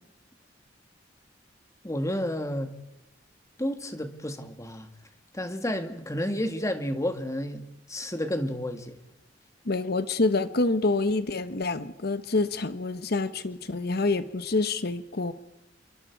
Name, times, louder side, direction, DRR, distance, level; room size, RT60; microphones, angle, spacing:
voice 1, 1.8-2.7 3.6-4.9 5.3-9.0, equal, 15° left, 7 dB, 1.9 m, -31 dB
voice 2, 9.7-15.3, left 3 dB, 60° left, 12 dB, 1.0 m, -27 dB
28.0 x 23.0 x 4.8 m, 0.94 s
head